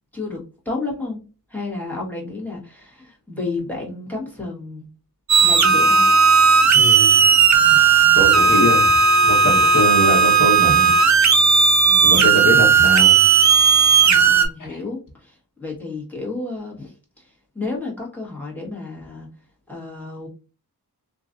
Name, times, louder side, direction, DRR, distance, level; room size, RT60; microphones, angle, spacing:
voice 1, 0.6-1.2 1.5-4.8 5.4-6.1 11.9-12.3 14.0-19.3 19.7-20.3, left 3 dB, 5° left, -4 dB, 1.5 m, -31 dB
sound 1, 5.3-14.5, right 5 dB, 50° right, 0.5 m, -14 dB
voice 2, 6.7-7.3 8.1-8.9 9.2-10.9 12.0-13.2 13.7-13.9 14.6-14.8, left 1 dB, 55° left, -1 dB, 1.2 m, -23 dB
3.0 x 2.5 x 2.5 m, 0.34 s
wide cardioid pair, 65°, 38 cm